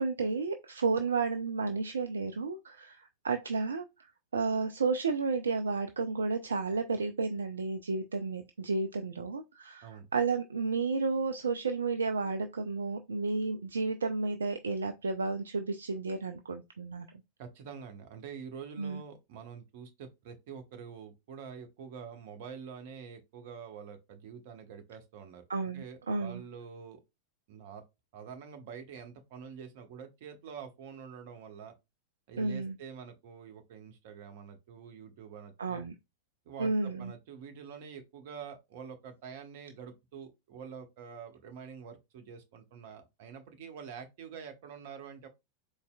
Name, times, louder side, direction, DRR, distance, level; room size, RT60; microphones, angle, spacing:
voice 1, 0.0-3.9 4.3-17.1 18.8-19.0 25.5-26.4 32.4-32.7 35.6-35.9 36.6-37.1, right 4 dB, 70° right, 0.3 m, -32 dB
voice 2, 17.4-25.4 25.7-27.0 27.5-27.8 28.1-31.7 32.3-35.9 36.5-45.3, right 6 dB, 50° right, 0.8 m, -46 dB
4.1 x 3.1 x 2.2 m
figure-of-eight pair, 90°, 0 cm